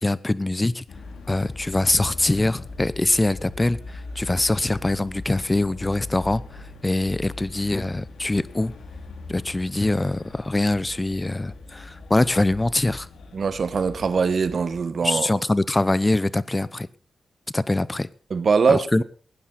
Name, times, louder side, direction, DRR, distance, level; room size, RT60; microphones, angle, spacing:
voice 1, 0.0-0.8 1.3-8.7 9.3-13.1 15.0-16.9 17.5-18.1 18.7-19.0, left 2 dB, 20° left, 0.8 m, -23 dB
sound 1, 0.9-14.8, left 3 dB, 85° left, 2.8 m, -40 dB
voice 2, 13.3-15.4 18.3-19.0, right 5 dB, 60° right, 1.2 m, -22 dB
18.5 x 9.8 x 4.2 m
cardioid pair, 65°, 0 cm